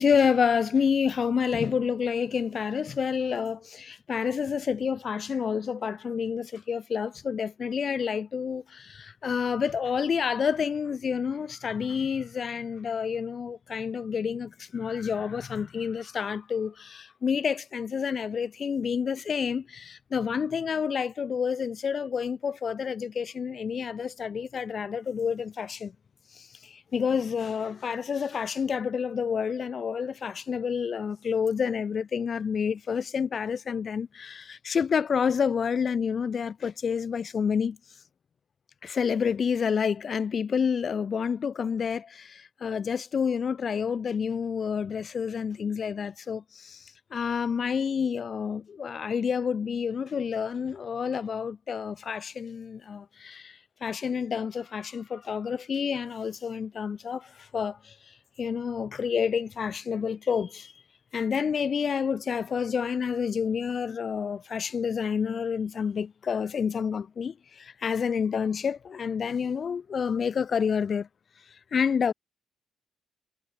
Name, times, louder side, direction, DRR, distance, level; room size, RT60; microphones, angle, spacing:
voice 1, 0.0-25.9 26.3-37.8 38.8-57.9 58.4-60.7 61.1-71.1 71.7-72.1, left 6 dB, 45° left, 3.7 m, -29 dB
cardioid pair, 90°, 0 cm